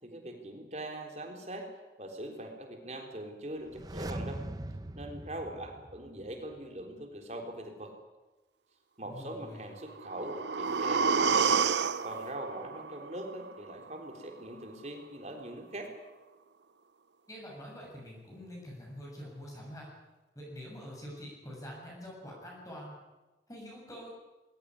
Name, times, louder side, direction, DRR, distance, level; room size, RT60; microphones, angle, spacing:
voice 1, 0.0-1.7 2.0-4.4 4.9-7.9 9.0-11.6 12.0-15.9, right 1 dB, 40° right, 3 dB, 3.8 m, -42 dB
sound 1, 3.6-6.5 6.8-6.9, right 1 dB, 20° right, 0.8 m, -41 dB
voice 2, 9.0-9.6 17.3-19.9 20.4-23.0 23.5-24.1, equal, 20° left, -3 dB, 7.2 m, -45 dB
sound 2, 9.9-13.9 14.2-14.3, right 5 dB, 80° right, 0.7 m, -30 dB
21.5 x 17.0 x 9.9 m, 1.2 s
head